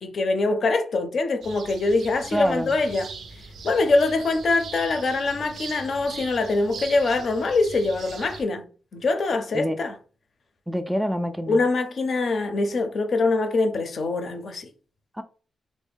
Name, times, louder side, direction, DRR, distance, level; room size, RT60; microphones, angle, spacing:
voice 1, 0.0-3.1 3.6-8.7 8.9-9.9 11.5-14.7, left 3 dB, 60° left, 0.5 m, -23 dB
sound 1, 1.4-8.4, right 4 dB, 80° right, 0.4 m, -41 dB
voice 2, 2.3-2.7 9.5-9.8 10.7-11.6 15.1-15.2, equal, 5° right, 0.3 m, -26 dB
3.6 x 2.1 x 3.4 m
cardioid pair, 105°, 0 cm